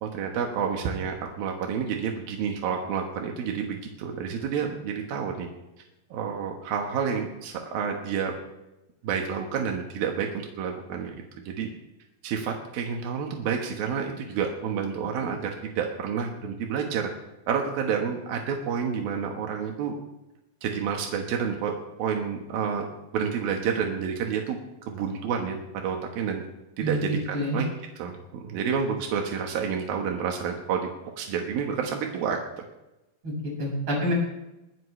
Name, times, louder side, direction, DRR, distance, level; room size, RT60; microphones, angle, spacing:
voice 1, 0.0-5.5 6.1-8.3 9.0-11.7 12.2-17.1 17.5-19.9 20.6-21.7 22.0-22.9 23.1-24.6 24.9-26.4 26.8-27.7 28.0-30.9 31.2-32.6, right 7 dB, 85° right, 2 dB, 3.3 m, -29 dB
voice 2, 26.8-27.6 33.2-34.1, equal, 35° right, -3 dB, 6.9 m, -28 dB
23.0 x 14.5 x 3.3 m, 0.94 s
omnidirectional pair, 4.1 m